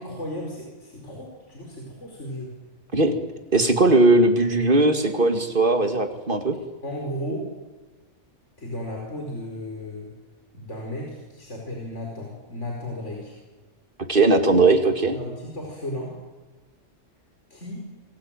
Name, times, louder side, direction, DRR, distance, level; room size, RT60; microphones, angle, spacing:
voice 1, 0.0-2.5 6.8-7.5 8.6-10.1 10.5-13.4 15.1-16.1 17.5-17.9, left 1 dB, 70° left, 0 dB, 5.1 m, -34 dB
voice 2, 3.5-6.6 14.1-15.2, right 2 dB, 45° right, 6 dB, 2.6 m, -19 dB
27.0 x 21.5 x 9.1 m, 1.3 s
omnidirectional pair, 1.3 m